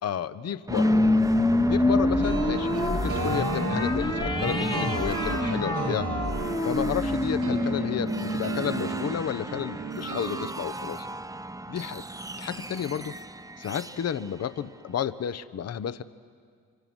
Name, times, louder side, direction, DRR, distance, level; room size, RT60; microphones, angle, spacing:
voice 1, 0.0-1.0 1.6-6.1 6.6-11.1 11.7-12.0 12.4-13.1 13.6-16.0, left 9 dB, 50° left, 14 dB, 0.8 m, -32 dB
sound 1, 0.7-9.5, left 2 dB, 15° left, 1.1 m, -26 dB
sound 2, 0.7-15.4, right 2 dB, 10° right, 0.9 m, -37 dB
sound 3, 2.2-10.5, right 5 dB, 70° right, 1.9 m, -34 dB
25.5 x 24.0 x 6.2 m, 2.1 s
supercardioid pair, 60°, 32 cm